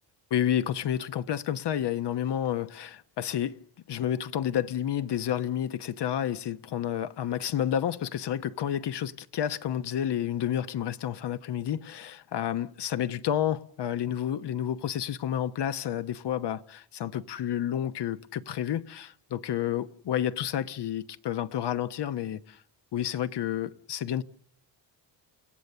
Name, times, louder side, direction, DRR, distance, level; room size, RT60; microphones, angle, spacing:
voice 1, 0.3-3.6 3.9-22.6 22.9-24.2, left 10 dB, 65° left, 1.1 m, -30 dB
30.0 x 16.5 x 6.8 m
cardioid pair, 80°, 44 cm